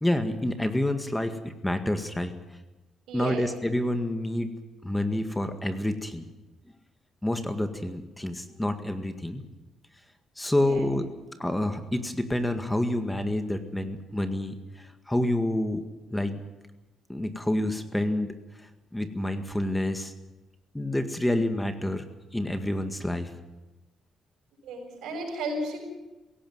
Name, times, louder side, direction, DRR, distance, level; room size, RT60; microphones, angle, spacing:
voice 1, 0.0-2.3 3.1-4.5 4.8-6.3 7.2-9.4 10.4-11.1 11.4-15.8 16.1-16.4 17.1-18.3 18.9-20.1 20.7-22.0 22.3-23.3, left 1 dB, 10° left, 8 dB, 1.9 m, -28 dB
voice 2, 3.1-3.4 10.5-10.9 24.6-25.8, right 2 dB, 85° right, 2 dB, 7.4 m, -34 dB
17.0 x 17.0 x 9.6 m, 1.1 s
cardioid pair, 90°, 0 cm